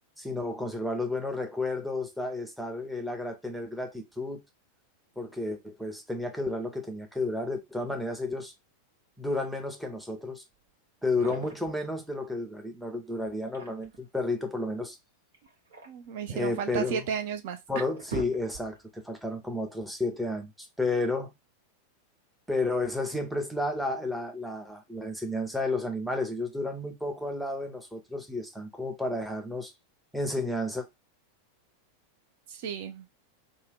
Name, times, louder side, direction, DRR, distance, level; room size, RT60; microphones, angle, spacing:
voice 1, 0.2-4.4 5.2-8.5 9.2-10.4 11.0-15.0 16.3-17.1 17.7-21.3 22.5-29.7 30.1-30.9, left 2 dB, ahead, 0.7 m, -32 dB
sound 1, 10.6-10.7 11.0-11.8 13.2-14.1 15.3-16.7 17.3-17.4 17.7-18.9, right 4 dB, 65° right, 1.0 m, -42 dB
voice 2, 15.9-17.6 32.5-33.0, right 7 dB, 50° right, 0.4 m, -33 dB
2.7 x 2.1 x 3.4 m
figure-of-eight pair, 90°, 0 cm